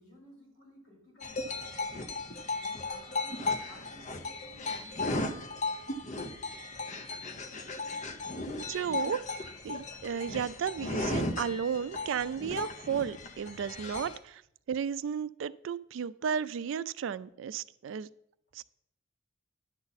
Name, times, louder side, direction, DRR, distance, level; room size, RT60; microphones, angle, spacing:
voice 1, 0.0-1.7 2.6-5.5, equal, 60° left, -3 dB, 4.1 m, -56 dB
sound 1, 1.2-14.2, left 2 dB, 35° left, 0.6 m, -36 dB
voice 2, 8.7-9.2 9.6-14.4 14.7-18.1 18.5-18.6, right 7 dB, 65° right, 16 dB, 0.3 m, -33 dB
10.5 x 7.0 x 4.1 m, 0.74 s
head